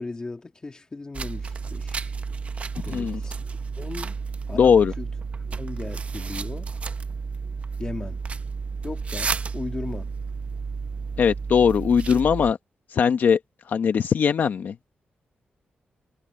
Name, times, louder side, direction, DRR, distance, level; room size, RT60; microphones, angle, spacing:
voice 1, 0.0-2.1 2.8-3.3 3.8-4.2 4.5-5.1 5.6-6.7 7.8-8.2 8.8-10.1, left 3 dB, 20° left, 1.9 m, -36 dB
sound 1, 1.1-12.5, right 5 dB, 40° right, 0.7 m, -32 dB
voice 2, 2.9-3.2 4.5-4.9 11.2-12.6 12.9-13.4 13.7-14.9, left 7 dB, 60° left, 0.9 m, -20 dB
wide cardioid pair, 150°, 4 cm